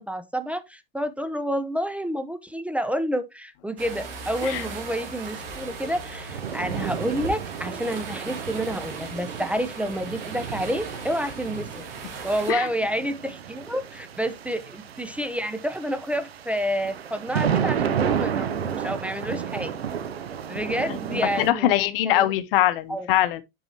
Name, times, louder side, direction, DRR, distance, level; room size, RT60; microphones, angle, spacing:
voice 1, 0.0-11.7 12.2-19.7 20.5-22.3 22.9-23.1, equal, 5° right, 0.6 m, -29 dB
sound 1, 3.8-12.5, right 4 dB, 65° right, 3.0 m, -38 dB
sound 2, 4.7-21.5, right 8 dB, 85° right, 0.8 m, -32 dB
voice 2, 21.4-23.4, left 13 dB, 65° left, 0.8 m, -22 dB
7.9 x 5.6 x 2.8 m
hypercardioid pair, 90°, 30 cm